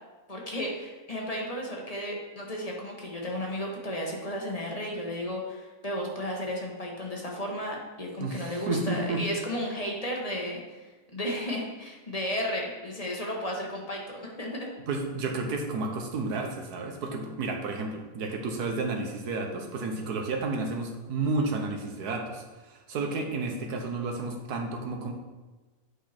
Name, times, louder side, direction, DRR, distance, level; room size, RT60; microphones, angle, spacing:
voice 1, 0.3-10.6 11.1-14.7, equal, 25° left, -1 dB, 1.1 m, -33 dB
voice 2, 8.2-9.2 14.9-25.1, right 3 dB, 85° right, 3 dB, 1.5 m, -31 dB
8.2 x 5.3 x 4.3 m, 1.2 s
omnidirectional pair, 1.6 m